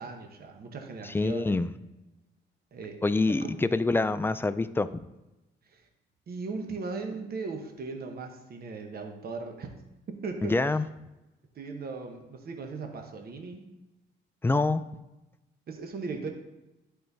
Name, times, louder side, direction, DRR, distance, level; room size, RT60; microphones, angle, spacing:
voice 1, 0.0-1.6 2.7-3.0 3.4-3.5 5.7-5.8 6.3-9.7 10.1-10.6 11.5-13.7 15.7-16.3, right 4 dB, 50° right, 4 dB, 1.0 m, -38 dB
voice 2, 1.1-1.7 3.0-4.9 10.4-10.8 14.4-14.8, left 3 dB, 10° left, 12 dB, 0.3 m, -26 dB
11.0 x 4.3 x 2.7 m, 1.0 s
cardioid pair, 90°, 20 cm